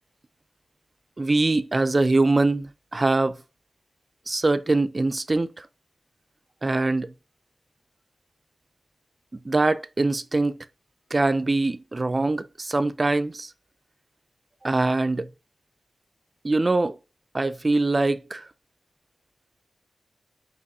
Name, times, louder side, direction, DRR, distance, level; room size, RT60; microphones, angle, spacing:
voice 1, 1.2-3.4 4.3-5.7 6.6-7.1 9.4-10.7 11.1-13.5 14.6-15.3 16.4-17.0 17.3-18.4, right 2 dB, 35° right, 0.4 m, -23 dB
5.2 x 3.2 x 2.8 m
wide cardioid pair, 80°, 0 cm